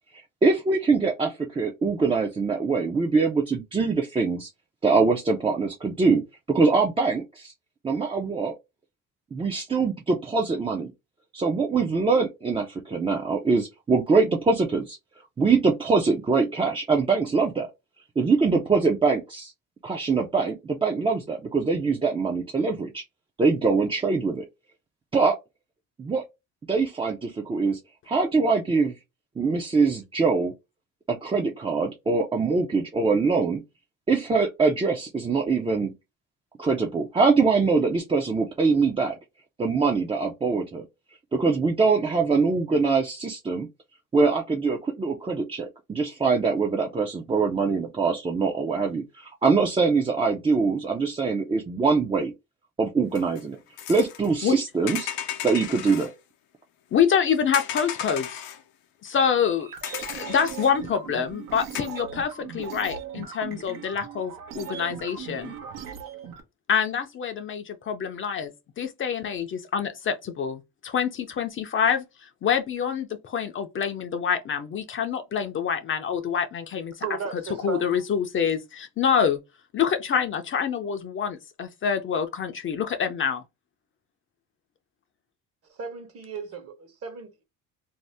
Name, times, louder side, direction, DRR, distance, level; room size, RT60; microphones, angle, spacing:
voice 1, 0.1-4.5 4.8-7.5 7.8-8.5 9.3-10.9 11.3-15.0 15.4-17.7 18.2-19.5 19.8-23.0 23.4-24.5 25.1-25.4 26.0-26.2 26.7-27.8 28.1-28.9 29.4-30.5 31.1-33.6 34.1-35.9 36.6-39.2 39.6-40.9 41.3-43.7 44.1-52.3 52.8-53.6 53.9-55.1 55.4-56.1, right 4 dB, 15° right, 0.4 m, -23 dB
sound 1, 53.1-53.4 53.8-54.6 54.9-56.1 57.5-58.6 59.2-59.3 59.8-60.7 61.7-61.8, left 11 dB, 85° left, 0.6 m, -34 dB
voice 2, 56.9-58.4 59.0-59.7 60.1-65.6 66.7-68.5 68.8-72.0 72.4-77.0 77.6-79.4 79.7-83.4, left 7 dB, 40° left, 0.5 m, -26 dB
sound 2, 59.6-66.4, right 8 dB, 80° right, 0.9 m, -39 dB
voice 3, 77.0-78.0 85.6-87.4, right 6 dB, 45° right, 1.0 m, -35 dB
2.7 x 2.0 x 3.2 m
cardioid pair, 115°, 33 cm